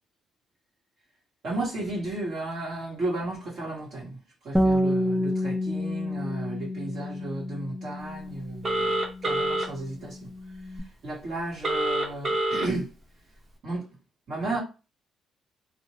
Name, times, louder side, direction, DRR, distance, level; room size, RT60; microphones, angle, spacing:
voice 1, 1.4-4.2 4.4-10.3 11.0-12.9 13.6-13.8 14.3-14.6, right 2 dB, 65° right, 1.3 m, -33 dB
Bass guitar, 4.5-10.8, equal, ahead, 0.4 m, -29 dB
Telephone, 8.6-9.7 11.6-12.6, right 2 dB, 45° right, 1.0 m, -26 dB
2.6 x 2.1 x 3.0 m
cardioid pair, 90°, 0 cm